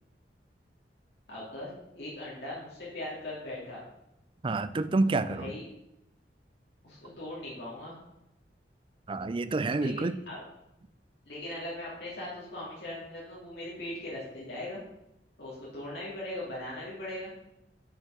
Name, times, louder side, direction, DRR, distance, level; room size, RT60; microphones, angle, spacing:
voice 1, 1.3-1.7 1.9-3.8 5.3-5.6 6.8-7.9 9.8-10.4 11.3-14.8 15.4-17.3, left 1 dB, 65° left, -7 dB, 2.6 m, -39 dB
voice 2, 4.4-5.6 9.1-10.2, right 3 dB, 30° right, 13 dB, 0.4 m, -28 dB
6.6 x 5.9 x 5.7 m, 0.89 s
head